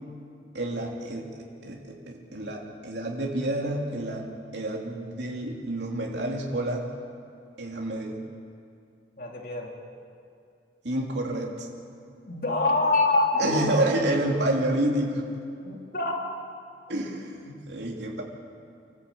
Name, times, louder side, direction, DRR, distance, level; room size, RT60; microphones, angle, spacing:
voice 1, 0.5-4.2 4.5-6.9 7.6-8.1 10.8-11.7 13.4-15.2 16.9-18.2, right 1 dB, 85° right, -1 dB, 2.8 m, -29 dB
voice 2, 9.2-9.7 12.3-13.7 15.6-16.1, left 2 dB, 55° left, 0 dB, 3.0 m, -25 dB
26.0 x 14.0 x 8.4 m, 2.4 s
head